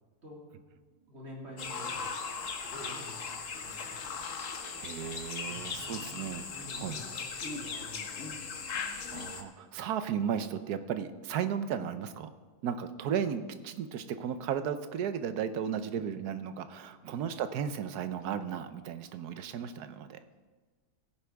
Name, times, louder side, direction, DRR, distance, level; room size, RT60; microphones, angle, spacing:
voice 1, 0.9-2.2 2.5-4.3 5.4-6.1 6.5-9.0 17.0-17.2, equal, 45° right, -4 dB, 3.4 m, -49 dB
sound 1, 1.6-9.4, left 5 dB, 60° left, 1.3 m, -38 dB
voice 2, 4.7-6.4 6.8-7.0 9.1-12.3 12.6-20.2, right 8 dB, 85° right, 11 dB, 1.3 m, -35 dB
16.5 x 9.9 x 3.5 m, 1.4 s
omnidirectional pair, 1.6 m